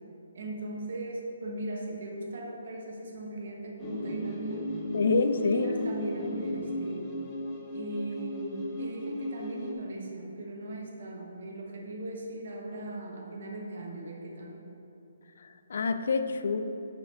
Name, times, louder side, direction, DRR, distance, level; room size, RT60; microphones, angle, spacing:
voice 1, 0.3-4.6 5.5-7.1 7.7-14.6, right 1 dB, 60° right, -1 dB, 1.3 m, -39 dB
sound 1, 3.8-9.7, equal, 25° left, 1.0 m, -35 dB
voice 2, 4.9-5.7 15.4-16.6, left 4 dB, 65° left, 9 dB, 0.4 m, -27 dB
6.4 x 5.7 x 3.6 m, 3.0 s
hypercardioid pair, 145°, 0 cm